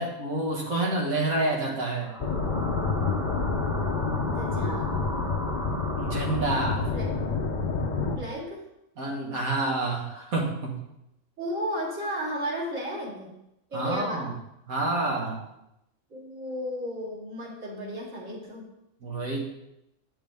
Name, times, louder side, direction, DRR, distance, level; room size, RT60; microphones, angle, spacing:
voice 1, 0.0-2.1 5.9-6.9 9.0-10.8 13.7-14.3 14.7-15.4 19.0-19.4, right 2 dB, 85° right, -2 dB, 2.2 m, -28 dB
sound 1, 1.9-7.0, right 1 dB, 5° right, 0.4 m, -38 dB
sound 2, 2.2-8.2, left 4 dB, 40° left, 0.8 m, -28 dB
voice 2, 4.2-4.9 6.9-7.1 8.2-8.6 11.4-13.3 13.7-14.3 16.1-18.7, equal, 65° right, -7 dB, 3.1 m, -34 dB
8.9 x 7.2 x 3.5 m, 0.85 s
omnidirectional pair, 1.4 m